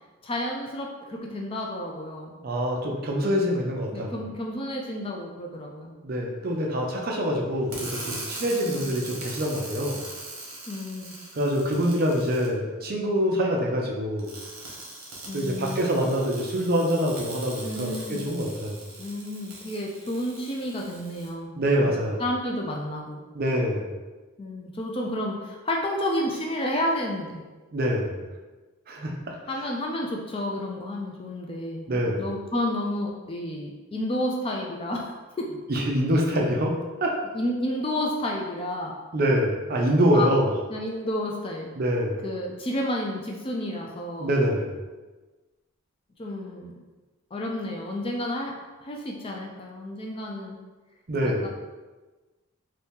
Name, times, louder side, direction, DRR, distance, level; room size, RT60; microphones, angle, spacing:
voice 1, 0.2-2.4 3.9-5.9 7.2-7.3 8.6-9.1 10.7-11.2 15.3-15.9 17.6-18.3 19.0-21.5 21.8-21.9 22.2-23.2 24.4-27.4 29.5-35.1 35.4-35.5 37.3-38.9 40.1-40.3 40.7-41.7 42.2-44.3 46.2-46.7 47.3-48.5 48.8-50.6 51.4-51.5, left 1 dB, 25° left, 0 dB, 0.3 m, -31 dB
voice 2, 2.4-4.1 6.0-10.0 11.3-14.3 15.3-18.8 21.6-22.2 23.3-23.9 27.7-28.1 28.9-29.1 31.9-32.2 35.7-36.7 37.0-37.1 39.1-40.5 41.8-42.2 44.2-44.8 51.1-51.5, equal, 45° right, 0 dB, 0.5 m, -25 dB
sound 1, 7.7-12.5 14.2-21.3, right 2 dB, 70° right, 1.0 m, -41 dB
2.7 x 2.7 x 3.5 m, 1.2 s
head